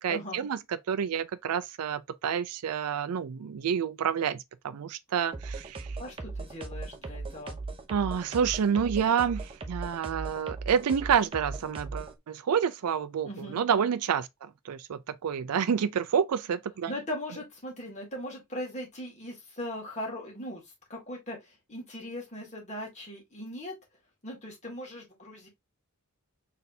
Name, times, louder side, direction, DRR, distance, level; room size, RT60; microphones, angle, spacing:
voice 1, 0.0-0.6 0.9-6.0 7.9-16.9, right 7 dB, 80° right, 0.4 m, -29 dB
sound 1, 5.3-12.1, right 3 dB, 25° right, 0.6 m, -38 dB
voice 2, 6.0-7.6 13.2-13.6 16.9-20.6 20.9-23.7 24.2-25.5, left 1 dB, 30° left, 2.1 m, -39 dB
4.1 x 3.3 x 2.6 m
head